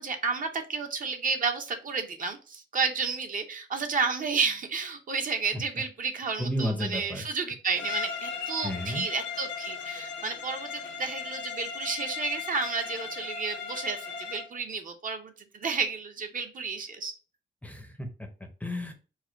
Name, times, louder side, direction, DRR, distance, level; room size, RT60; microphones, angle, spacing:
voice 1, 0.0-17.1, right 5 dB, 45° right, 6 dB, 0.7 m, -31 dB
voice 2, 6.4-7.2 8.6-9.1 17.6-18.9, equal, 10° left, 5 dB, 0.6 m, -33 dB
Bowed string instrument, 7.7-14.5, left 6 dB, 85° left, 1.1 m, -37 dB
4.8 x 2.2 x 4.3 m, 0.34 s
wide cardioid pair, 170°, 19 cm